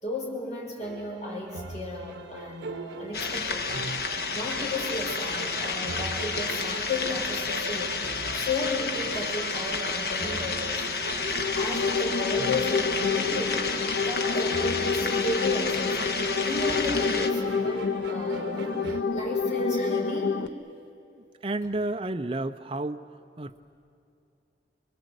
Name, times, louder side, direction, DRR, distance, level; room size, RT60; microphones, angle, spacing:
voice 1, 0.0-11.0 11.5-13.7 14.0-16.0 16.4-20.4, left 2 dB, 40° left, -2 dB, 5.5 m, -34 dB
sound 1, 0.8-19.0, right 4 dB, 80° right, 1.0 m, -41 dB
sound 2, 3.1-17.3, left 4 dB, 65° left, 1.4 m, -30 dB
sound 3, 11.0-20.5, left 5 dB, 80° left, 0.7 m, -29 dB
voice 2, 21.1-23.0 23.4-23.6, right 2 dB, 30° right, 7 dB, 0.5 m, -31 dB
26.5 x 22.0 x 8.2 m, 2.6 s
head